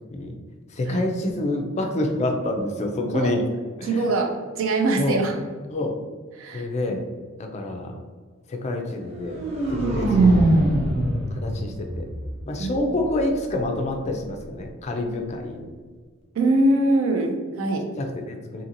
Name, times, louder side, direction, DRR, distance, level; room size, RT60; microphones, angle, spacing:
voice 1, 0.7-3.4 3.8-4.0 5.0-5.2 5.7-6.0 6.5-7.1 7.4-8.0 8.5-9.4 9.7-10.5 11.3-12.1 12.5-15.7 18.0-18.6, left 2 dB, 35° left, 3 dB, 0.3 m, -27 dB
voice 2, 3.8-5.4 6.4-7.0 12.6-12.8 16.4-17.9, right 2 dB, 70° right, 4 dB, 0.4 m, -23 dB
sound 1, 9.0-13.0, right 2 dB, 30° right, 0.6 m, -22 dB
2.8 x 2.7 x 2.6 m, 1.5 s
head